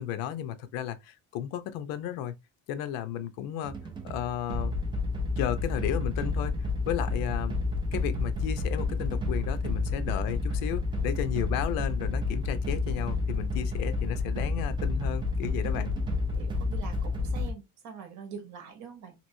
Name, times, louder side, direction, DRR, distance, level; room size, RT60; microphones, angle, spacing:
voice 1, 0.0-2.3 2.7-3.7 4.0-4.7 5.4-6.6 6.9-7.6 7.9-15.9, left 10 dB, 85° left, 0.6 m, -34 dB
sound 1, 3.6-17.5, left 3 dB, 15° right, 0.3 m, -30 dB
voice 2, 16.3-19.1, right 6 dB, 55° right, 1.1 m, -44 dB
3.0 x 2.7 x 2.6 m
cardioid pair, 170°, 34 cm